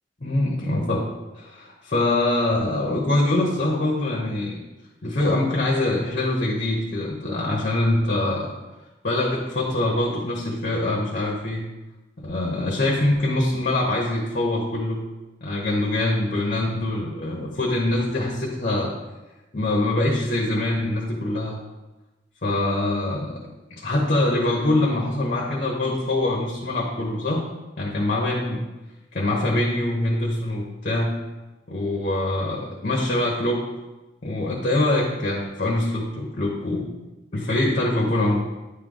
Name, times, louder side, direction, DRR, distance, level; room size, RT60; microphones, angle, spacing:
voice 1, 0.2-1.1 1.4-4.6 5.0-8.5 9.0-11.6 12.2-15.0 15.4-18.9 19.5-21.6 22.4-23.4 23.7-27.4 27.8-28.6 29.1-31.1 31.7-33.6 34.2-36.9 37.3-38.4, left 1 dB, 45° left, -2 dB, 1.0 m, -24 dB
9.8 x 3.3 x 3.8 m, 1.1 s
head